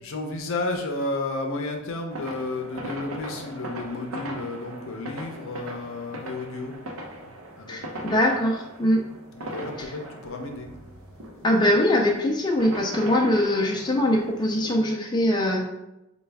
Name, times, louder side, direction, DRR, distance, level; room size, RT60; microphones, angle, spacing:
voice 1, 0.0-6.7 7.2-7.8 9.3-10.7, left 2 dB, 70° left, 3 dB, 0.6 m, -32 dB
sound 1, 2.1-14.8, right 1 dB, 70° right, 0.7 m, -39 dB
voice 2, 7.7-9.0 11.4-15.7, left 1 dB, 20° left, 0 dB, 0.4 m, -22 dB
4.2 x 2.3 x 3.4 m, 0.91 s
head